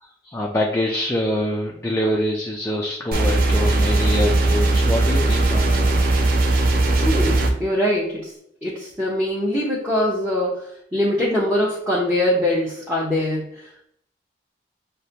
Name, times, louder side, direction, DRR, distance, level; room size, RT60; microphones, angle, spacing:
voice 1, 0.0-5.8, left 1 dB, 15° left, -1 dB, 0.4 m, -25 dB
sound 1, 3.1-7.5, right 2 dB, 50° right, 0.6 m, -18 dB
voice 2, 6.9-8.3 8.6-10.7 10.9-13.5, left 1 dB, 10° right, -8 dB, 0.8 m, -22 dB
6.4 x 2.2 x 2.8 m, 0.72 s
head